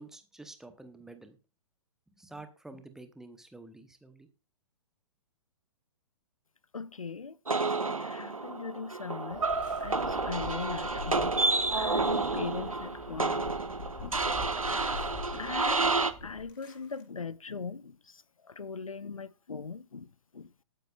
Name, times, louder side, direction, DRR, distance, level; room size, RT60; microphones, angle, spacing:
voice 1, 0.0-1.4 2.2-4.3, right 2 dB, 5° right, 1.0 m, -49 dB
voice 2, 6.7-7.4 7.7-9.5 9.8-11.3 11.7-13.6 14.0-14.2 14.7-15.0 15.3-20.5, left 5 dB, 80° left, 0.5 m, -40 dB
sound 1, 7.5-16.1, right 3 dB, 80° right, 1.0 m, -30 dB
sound 2, 9.3-16.4, left 4 dB, 20° left, 2.4 m, -44 dB
sound 3, 9.4-10.9 11.8-13.3 14.7-15.2 16.5-17.0, left 4 dB, 40° left, 4.1 m, -56 dB
20.0 x 9.1 x 2.5 m
figure-of-eight pair, 120°, 17 cm